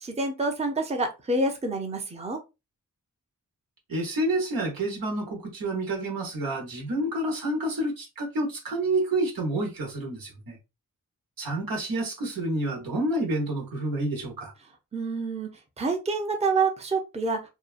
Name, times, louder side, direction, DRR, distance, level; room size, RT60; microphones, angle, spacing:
voice 1, 0.0-2.4 14.9-15.5 15.8-17.5, right 3 dB, 20° right, 0.6 m, -27 dB
voice 2, 3.9-10.6 11.4-14.5, right 1 dB, 80° right, 1.1 m, -29 dB
2.7 x 2.3 x 2.4 m
cardioid pair, 65°, 35 cm